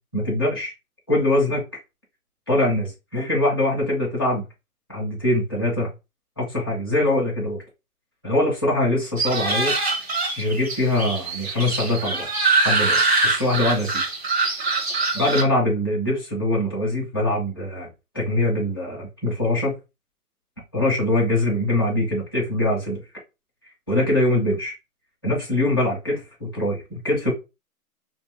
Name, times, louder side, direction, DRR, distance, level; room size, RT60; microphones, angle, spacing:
voice 1, 0.1-0.7 1.1-1.6 2.5-4.4 4.9-5.9 6.4-7.6 8.2-9.7 10.4-12.3 12.6-14.0 15.1-17.9 18.1-19.8 20.7-23.0 23.9-24.7 25.2-27.3, left 1 dB, 15° left, 0.6 m, -23 dB
sound 1, 9.2-15.4, right 3 dB, 40° right, 0.9 m, -23 dB
3.1 x 2.5 x 3.5 m
hypercardioid pair, 170°, 46 cm